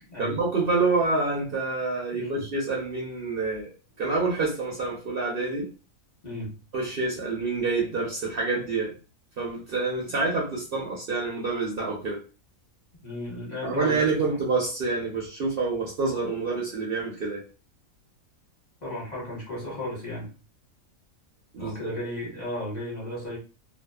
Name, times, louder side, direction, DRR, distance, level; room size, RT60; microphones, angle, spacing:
voice 1, 0.2-3.7 4.0-5.7 6.7-8.9 9.4-12.2 13.6-17.4 21.5-21.9, right 3 dB, 50° right, -3 dB, 0.8 m, -27 dB
voice 2, 2.1-2.5 6.2-6.5 13.0-14.2 18.8-20.3 21.6-23.4, left 1 dB, 35° left, -5 dB, 1.1 m, -34 dB
2.5 x 2.3 x 2.3 m, 0.34 s
omnidirectional pair, 1.4 m